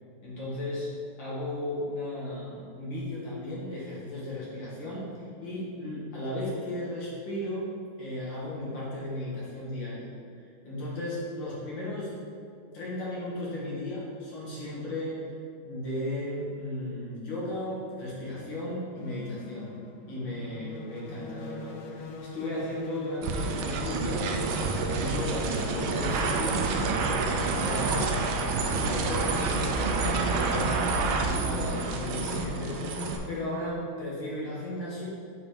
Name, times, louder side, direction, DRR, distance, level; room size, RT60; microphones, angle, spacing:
voice 1, 0.2-0.9 1.2-12.2 12.7-15.2 15.6-19.7 20.1-24.4 24.9-26.6 27.0-31.0 31.2-35.1, left 1 dB, 65° left, -7 dB, 2.6 m, -35 dB
sound 1, 19.0-33.7, left 4 dB, 90° left, 1.6 m, -41 dB
sound 2, 23.2-33.2, right 4 dB, 85° right, 1.5 m, -28 dB
6.8 x 4.6 x 5.1 m, 2.4 s
omnidirectional pair, 2.2 m